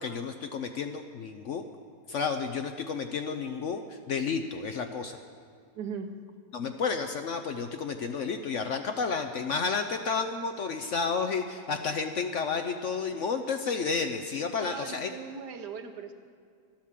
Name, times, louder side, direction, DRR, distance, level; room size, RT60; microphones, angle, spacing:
voice 1, 0.0-1.7 2.1-5.2 6.5-15.1, left 5 dB, 60° left, 7 dB, 0.8 m, -31 dB
voice 2, 5.7-6.2 14.6-16.1, right 6 dB, 75° right, 6 dB, 1.6 m, -39 dB
12.5 x 12.0 x 7.4 m, 2.2 s
omnidirectional pair, 1.8 m